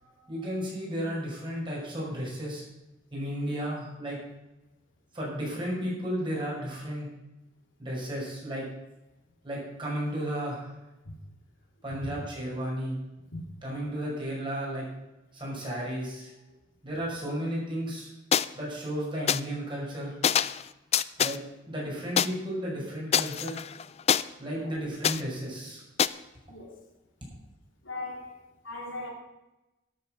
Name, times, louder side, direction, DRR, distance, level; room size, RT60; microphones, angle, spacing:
voice 1, 0.0-2.6 3.1-4.2 5.1-7.1 7.8-8.7 9.4-10.7 11.8-13.0 13.6-14.8 15.3-16.3 16.8-18.1 18.5-20.1 21.2-21.4 21.7-23.6 24.4-25.8, equal, 25° right, 5.6 m, -33 dB
sound 1, 18.3-18.5 19.3-19.4 20.2-20.6 20.9-21.4 22.2-22.3 23.1-24.2 25.0-25.2 26.0-26.1, left 8 dB, 35° left, 0.3 m, -24 dB
voice 2, 26.5-26.8 27.8-29.1, left 2 dB, 75° left, 3.0 m, -39 dB
13.0 x 7.7 x 6.4 m
head